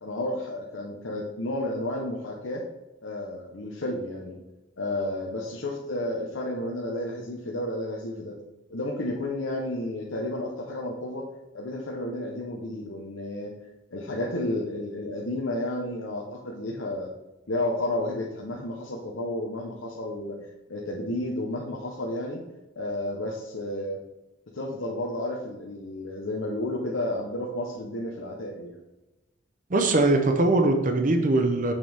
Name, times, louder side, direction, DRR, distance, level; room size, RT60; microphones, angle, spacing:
voice 1, 0.0-2.6 3.0-4.4 4.8-8.4 8.7-11.3 11.5-13.5 13.9-17.1 17.5-22.4 22.8-24.0 24.5-28.8, left 1 dB, 80° left, -1 dB, 0.9 m, -32 dB
voice 2, 29.7-31.7, right 2 dB, 40° right, 5 dB, 0.7 m, -21 dB
6.7 x 6.3 x 3.5 m, 1.0 s
head